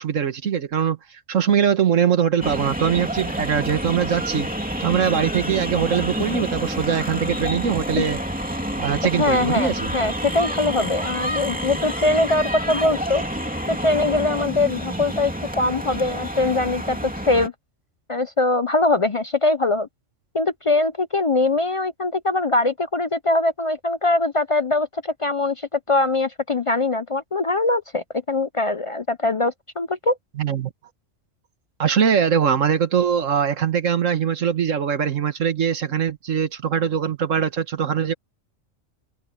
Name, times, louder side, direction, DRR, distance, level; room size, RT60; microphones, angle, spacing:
voice 1, 0.0-4.5 4.8-8.2 8.8-9.9 30.4-30.7 31.8-38.1, right 7 dB, 90° right, 1.7 m, -22 dB
sound 1, 2.4-17.5, equal, 5° right, 2.6 m, -28 dB
voice 2, 9.2-13.2 13.7-17.5 18.1-19.9 20.3-30.2, left 2 dB, 40° left, 0.4 m, -22 dB
omnidirectional pair, 1.3 m